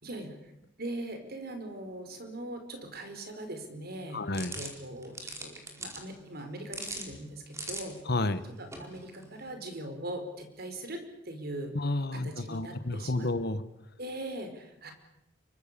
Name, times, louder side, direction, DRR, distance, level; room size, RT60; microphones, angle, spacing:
voice 1, 0.0-0.5 0.8-4.2 4.5-8.0 8.6-11.7 12.1-13.3 14.0-14.9, right 1 dB, 55° right, 6 dB, 5.0 m, -40 dB
voice 2, 4.1-4.6 8.1-8.4 11.7-13.6, left 2 dB, 55° left, 13 dB, 1.5 m, -31 dB
sound 1, 4.3-9.5, right 2 dB, 15° right, 4.7 m, -43 dB
28.0 x 24.0 x 7.0 m, 0.85 s
head